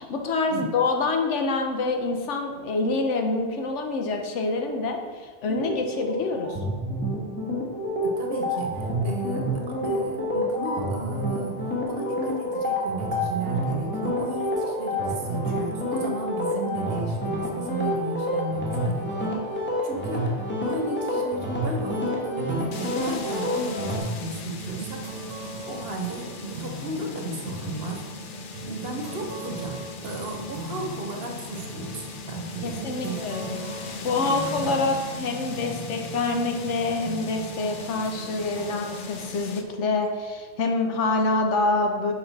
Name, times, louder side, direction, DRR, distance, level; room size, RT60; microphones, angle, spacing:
voice 1, 0.0-6.6 32.6-33.6 34.0-42.1, left 3 dB, 80° left, 3 dB, 1.1 m, -26 dB
sound 1, 5.4-24.0, equal, 10° left, 1.2 m, -28 dB
voice 2, 8.0-25.1 25.6-28.1 28.6-33.5 34.1-34.7, right 2 dB, 60° right, 2 dB, 1.1 m, -35 dB
sound 2, 22.7-39.6, left 4 dB, 55° left, 0.6 m, -38 dB
sound 3, 24.5-40.4, right 3 dB, 90° right, 1.0 m, -40 dB
5.8 x 5.1 x 4.1 m, 1.5 s
omnidirectional pair, 1.2 m